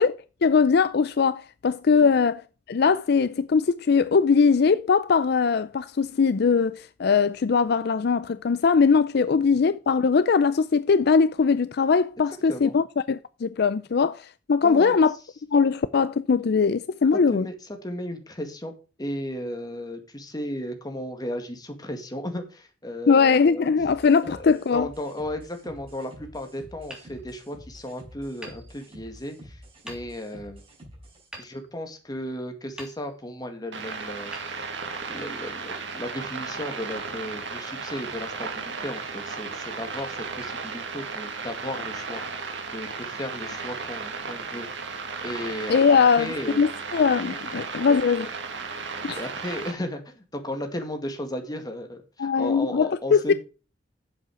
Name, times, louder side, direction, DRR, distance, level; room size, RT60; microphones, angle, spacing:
voice 1, 0.0-2.4 2.7-15.1 15.5-17.5 23.1-24.9 45.7-48.3 49.0-49.2 52.2-53.3, left 5 dB, 60° left, 0.4 m, -21 dB
voice 2, 14.6-15.0 17.3-17.5 17.8-18.7 19.0-23.7 24.3-30.6 31.4-34.3 35.1-44.7 45.2-46.6 47.9-48.0 49.2-53.3, left 1 dB, 20° left, 2.1 m, -35 dB
sound 1, 23.8-31.3, equal, 30° right, 4.8 m, -48 dB
Hammer, 26.9-27.9 28.4-29.3 29.9-30.5 31.3-32.3 32.7-33.5 34.3-35.3, equal, 5° right, 3.1 m, -46 dB
sound 2, 33.7-49.7, right 4 dB, 80° right, 2.2 m, -35 dB
8.6 x 7.5 x 4.9 m
head